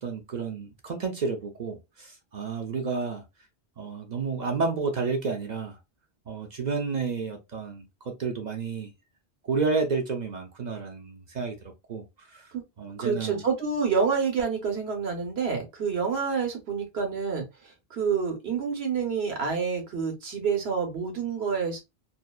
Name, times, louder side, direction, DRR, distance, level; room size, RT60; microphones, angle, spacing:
voice 1, 0.0-3.2 3.8-5.8 6.3-8.9 9.4-11.6 11.9-12.0 12.3-12.5 12.8-13.4, right 4 dB, 50° right, 0.6 m, -30 dB
voice 2, 13.0-21.8, right 5 dB, 80° right, 1.2 m, -28 dB
2.6 x 2.2 x 2.2 m
omnidirectional pair, 1.1 m